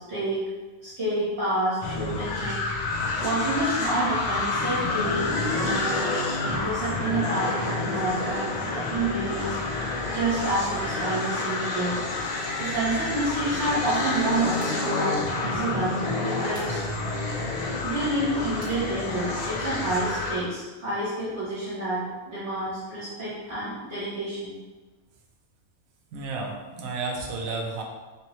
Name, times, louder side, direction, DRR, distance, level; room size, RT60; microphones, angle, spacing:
voice 1, 0.1-0.4 0.8-2.6 3.2-5.2 5.5-6.0 6.4-12.0 12.6-16.9 17.8-24.5, right 2 dB, 55° right, -10 dB, 1.3 m, -29 dB
sound 1, 1.8-20.4, left 3 dB, 80° left, 0.3 m, -29 dB
sound 2, 14.5-14.8 16.5-16.8 18.6-18.8, equal, 35° right, 1.1 m, -46 dB
voice 2, 26.1-27.8, right 3 dB, 80° right, 1 dB, 1.1 m, -32 dB
3.5 x 3.0 x 3.0 m, 1.2 s
omnidirectional pair, 1.4 m